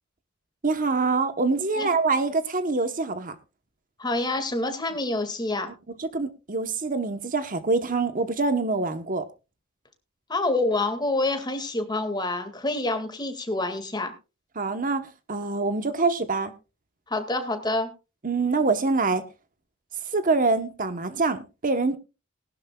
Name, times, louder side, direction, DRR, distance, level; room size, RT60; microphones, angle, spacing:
voice 1, 0.6-3.3 6.0-9.2 14.6-16.5 18.2-19.3 20.1-22.0, right 3 dB, 40° right, 10 dB, 1.0 m, -25 dB
voice 2, 4.0-5.7 10.3-14.1 17.1-17.9, left 2 dB, 20° left, 7 dB, 2.1 m, -27 dB
19.5 x 11.5 x 2.3 m, 0.30 s
head